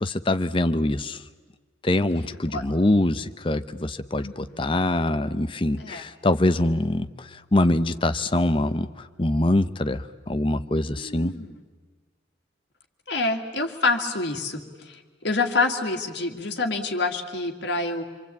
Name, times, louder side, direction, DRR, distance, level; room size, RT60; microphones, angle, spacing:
voice 1, 0.0-1.2 1.8-11.3, left 1 dB, 25° left, 11 dB, 0.7 m, -24 dB
voice 2, 4.2-4.7 5.8-6.1 11.0-11.6 13.1-18.0, left 3 dB, 60° left, 2 dB, 2.3 m, -27 dB
26.0 x 24.5 x 8.5 m, 1.4 s
head